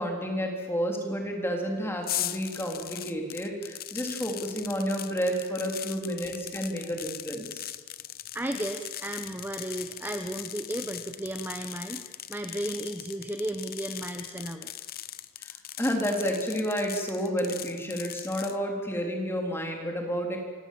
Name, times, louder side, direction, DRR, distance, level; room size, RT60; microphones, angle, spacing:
voice 1, 0.0-7.7 15.4-20.4, equal, 10° left, 1 dB, 3.5 m, -30 dB
sound 1, 2.0-18.6, left 13 dB, 40° left, 0.8 m, -39 dB
voice 2, 8.3-14.7, right 1 dB, 10° right, 6 dB, 0.9 m, -34 dB
28.5 x 17.5 x 7.5 m, 1.4 s
head